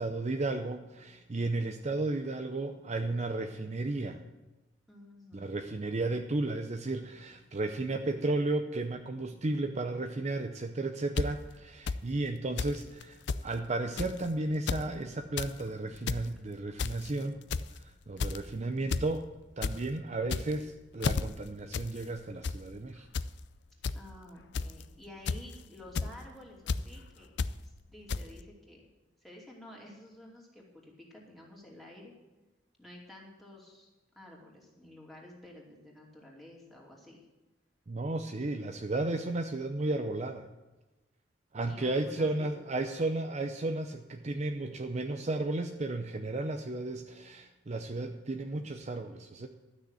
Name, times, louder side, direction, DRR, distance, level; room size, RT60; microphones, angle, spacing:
voice 1, 0.0-4.2 5.3-17.4 17.7-19.3 19.6-23.1 37.9-40.5 41.5-49.5, right 2 dB, 35° right, 6 dB, 0.6 m, -33 dB
voice 2, 4.9-5.6 16.3-16.4 18.1-18.6 23.9-28.8 29.2-32.1 32.8-33.9 34.1-37.2 41.6-42.5, left 1 dB, ahead, -3 dB, 2.8 m, -51 dB
sound 1, 11.2-11.3 11.9-12.0 12.6-12.8 13.0-13.1 13.3-13.4 14.0-14.2 14.5-14.8 15.2-15.5 15.9-16.2 16.8-17.1 17.5-17.8 18.2-18.5 18.9-19.1 19.4-19.7 20.2-20.6 21.0-21.2 21.7-21.9 22.2-22.6 23.1-23.3 23.8-23.9 24.5-24.8 25.3-25.5 26.0-26.1 26.7-26.8 27.4-27.5 28.1-28.2, left 4 dB, 65° left, 0.5 m, -31 dB
12.5 x 6.5 x 8.0 m, 1.1 s
head